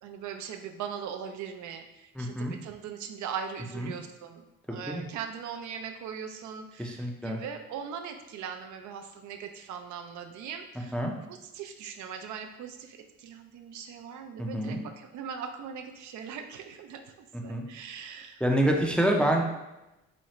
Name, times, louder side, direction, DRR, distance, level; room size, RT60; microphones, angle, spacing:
voice 1, 0.0-4.4 4.7-11.0 11.3-18.4, right 7 dB, 75° right, 5 dB, 0.5 m, -40 dB
voice 2, 2.1-2.5 3.7-3.9 4.7-5.0 6.8-7.4 10.9-11.1 14.4-14.8 17.3-17.6 18.4-19.4, right 1 dB, 5° left, 0 dB, 0.4 m, -27 dB
4.2 x 2.4 x 3.0 m, 0.97 s
cardioid pair, 90°, 30 cm